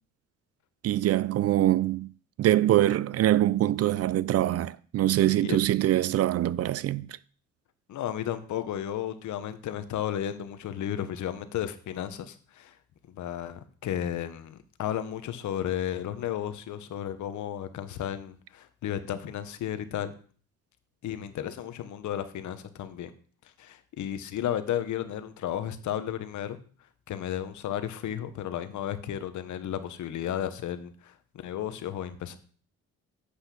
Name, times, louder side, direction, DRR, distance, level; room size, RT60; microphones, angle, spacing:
voice 1, 0.8-2.1 2.4-7.1, right 13 dB, 55° right, 0.4 m, -24 dB
voice 2, 7.9-12.8 13.1-20.1 21.0-23.1 23.6-26.6 27.1-31.2 31.4-32.4, left 10 dB, 75° left, 1.0 m, -33 dB
8.1 x 5.6 x 5.9 m
cardioid pair, 90°, 30 cm